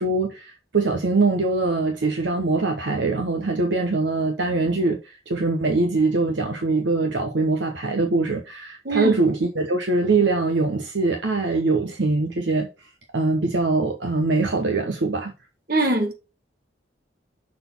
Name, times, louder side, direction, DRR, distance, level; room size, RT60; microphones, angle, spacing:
voice 1, 0.0-12.7 13.1-15.3, right 3 dB, 70° right, 0.9 m, -23 dB
voice 2, 15.7-16.1, right 2 dB, 55° right, 1.7 m, -21 dB
6.5 x 4.0 x 5.4 m
head